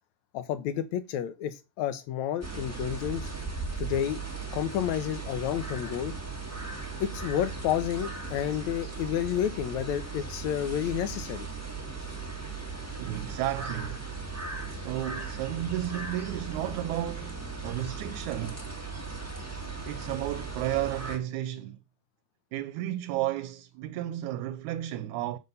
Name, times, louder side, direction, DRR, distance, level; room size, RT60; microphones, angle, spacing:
voice 1, 0.3-3.3 3.8-4.2 4.5-6.1 7.0-11.5, left 10 dB, 75° left, 2.2 m, -30 dB
sound 1, 2.4-21.2, right 4 dB, 10° right, 0.8 m, -37 dB
voice 2, 12.9-14.1 14.7-18.7 19.9-21.8 22.5-25.4, right 13 dB, 85° right, 2.0 m, -33 dB
7.1 x 6.2 x 5.4 m
omnidirectional pair, 3.4 m